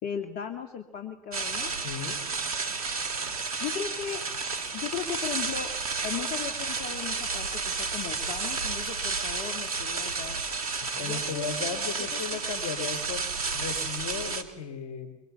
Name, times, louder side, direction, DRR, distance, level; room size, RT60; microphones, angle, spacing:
voice 1, 0.0-1.7 3.6-4.2 4.7-5.7 6.0-10.4 11.0-12.4, left 8 dB, 60° left, 6 dB, 2.5 m, -37 dB
sound 1, 1.3-14.4, right 4 dB, 90° right, 1.7 m, -32 dB
voice 2, 1.8-2.2 10.9-13.3 13.5-15.1, left 6 dB, 80° left, 9 dB, 3.8 m, -35 dB
24.0 x 23.0 x 7.2 m, 0.88 s
hypercardioid pair, 65°, 18 cm